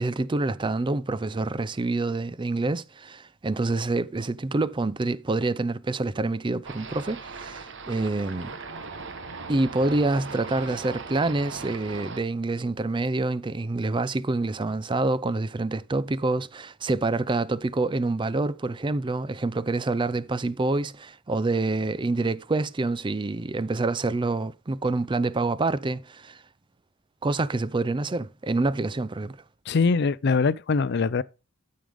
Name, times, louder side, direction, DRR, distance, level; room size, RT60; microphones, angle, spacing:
voice 1, 0.0-8.5 9.5-26.4 27.2-29.4, right 2 dB, 25° right, 0.4 m, -27 dB
sound 1, 6.6-12.2, right 4 dB, 65° right, 1.1 m, -39 dB
voice 2, 29.7-31.2, left 4 dB, 55° left, 0.5 m, -22 dB
12.5 x 6.4 x 3.5 m
head